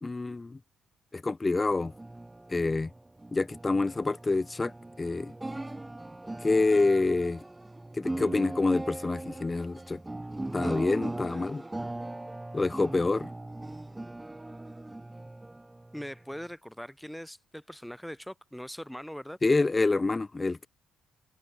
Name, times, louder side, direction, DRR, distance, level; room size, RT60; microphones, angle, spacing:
voice 1, 0.0-0.6 1.1-1.9 2.5-2.9 3.3-4.7 5.0-5.3 6.4-7.4 8.0-10.0 10.5-11.6 12.5-13.3 19.4-20.7, left 3 dB, 25° left, 0.4 m, -27 dB
sound 1, 1.8-16.5, right 2 dB, 15° right, 1.8 m, -39 dB
voice 2, 15.9-19.4, equal, ahead, 6.1 m, -41 dB
hypercardioid pair, 45°, 0 cm